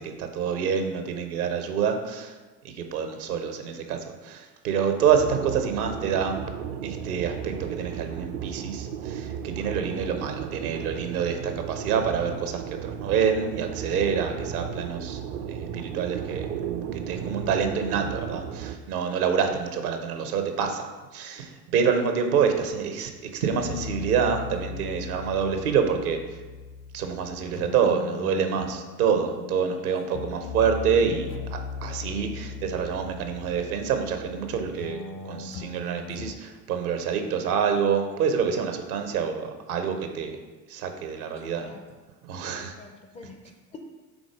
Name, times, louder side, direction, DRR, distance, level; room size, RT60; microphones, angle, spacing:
voice 1, 0.0-2.4 2.6-6.4 6.8-16.5 16.9-26.4 26.9-40.4 40.7-41.7 42.2-42.7, right 7 dB, 65° right, 6 dB, 0.9 m, -27 dB
sound 1, 5.1-18.8, right 8 dB, 45° right, 0.5 m, -34 dB
sound 2, 23.5-36.3, left 6 dB, 60° left, 0.6 m, -38 dB
voice 2, 29.8-30.2 41.2-42.0 42.4-43.8, left 3 dB, 15° left, 3 dB, 0.4 m, -48 dB
5.0 x 3.8 x 5.0 m, 1.3 s
figure-of-eight pair, 65°, 48 cm